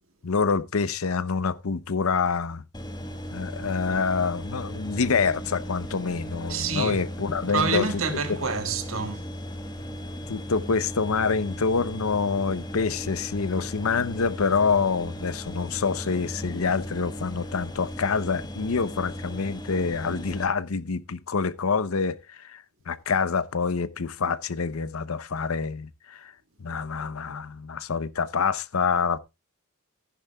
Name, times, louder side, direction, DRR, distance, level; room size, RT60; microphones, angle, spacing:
voice 1, 0.2-2.6 3.3-8.2 10.3-26.3 26.6-29.2, left 5 dB, 80° left, 0.7 m, -26 dB
sound 1, 2.7-20.5, equal, 20° left, 1.4 m, -37 dB
voice 2, 6.5-7.0 7.5-9.2, right 4 dB, 65° right, 1.7 m, -27 dB
14.5 x 10.0 x 2.3 m
head